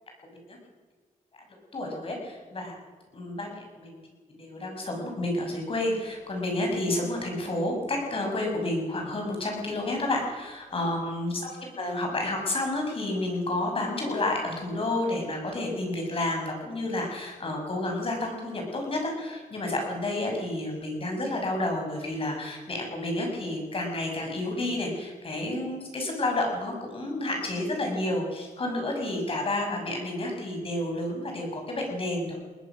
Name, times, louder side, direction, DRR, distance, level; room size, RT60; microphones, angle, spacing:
voice 1, 1.7-2.8 3.1-4.0 4.3-32.4, left 1 dB, 40° left, 1 dB, 6.8 m, -30 dB
21.5 x 20.0 x 6.3 m, 1.5 s
wide cardioid pair, 125°, 14 cm